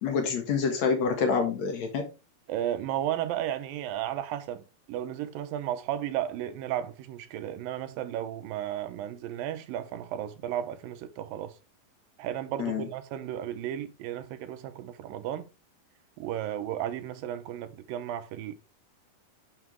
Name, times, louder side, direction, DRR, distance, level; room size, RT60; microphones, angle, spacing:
voice 1, 0.0-2.1 12.6-12.9, left 5 dB, 55° left, 2.6 m, -27 dB
voice 2, 2.5-11.5 12.2-15.5 16.2-18.5, right 11 dB, 90° right, 2.6 m, -34 dB
9.7 x 6.1 x 3.5 m
omnidirectional pair, 4.0 m